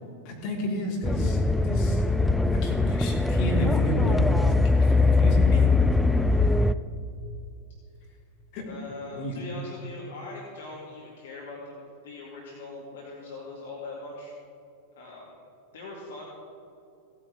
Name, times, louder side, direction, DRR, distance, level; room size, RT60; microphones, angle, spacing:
voice 1, 0.2-2.0 2.5-5.6 8.5-8.7 9.1-9.4, equal, 40° left, -2 dB, 3.1 m, -31 dB
sound 1, 1.0-6.7, left 3 dB, 5° left, 0.4 m, -22 dB
voice 2, 8.7-14.3 14.9-15.4 15.7-16.2, left 2 dB, 60° left, -4 dB, 2.2 m, -41 dB
16.5 x 8.7 x 4.8 m, 2.7 s
figure-of-eight pair, 90°, 0 cm